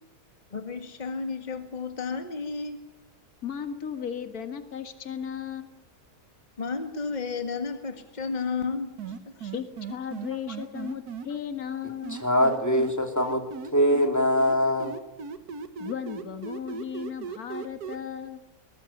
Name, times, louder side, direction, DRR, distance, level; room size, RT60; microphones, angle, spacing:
voice 1, 0.5-2.8 6.6-9.5, left 4 dB, 30° left, 6 dB, 2.0 m, -32 dB
voice 2, 3.4-5.7 9.5-12.2 15.8-18.4, left 8 dB, 70° left, 8 dB, 2.2 m, -35 dB
sound 1, 9.0-11.3 12.0-14.1 14.4-18.0, right 6 dB, 80° right, 1.8 m, -37 dB
voice 3, 12.1-13.5 13.7-15.0, equal, 10° left, 4 dB, 3.2 m, -23 dB
22.5 x 19.5 x 9.1 m, 0.94 s
omnidirectional pair, 1.6 m